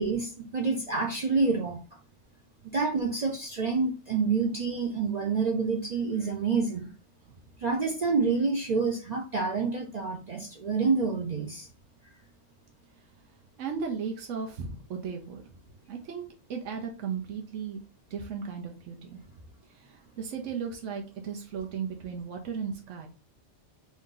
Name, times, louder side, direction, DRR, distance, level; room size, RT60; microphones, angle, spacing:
voice 1, 0.0-1.8 2.7-6.9 7.6-11.7, right 4 dB, 50° right, 1 dB, 0.5 m, -28 dB
voice 2, 13.6-15.5 15.9-17.8 18.1-19.2 19.7-23.1, right 6 dB, 90° right, 2 dB, 1.1 m, -36 dB
3.6 x 2.7 x 3.7 m, 0.34 s
omnidirectional pair, 1.2 m